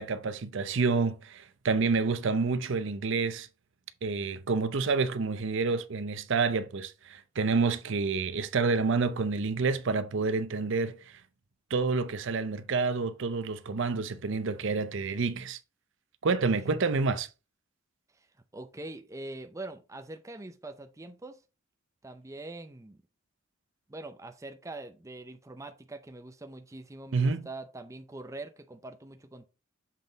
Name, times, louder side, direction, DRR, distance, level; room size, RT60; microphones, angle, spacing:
voice 1, 0.0-3.5 4.0-11.2 11.7-15.6 16.2-17.3 27.1-27.4, right 4 dB, 60° right, 0.6 m, -28 dB
voice 2, 18.5-21.4 22.0-23.0 23.9-29.4, right 2 dB, 15° right, 0.5 m, -43 dB
7.4 x 3.8 x 3.9 m
head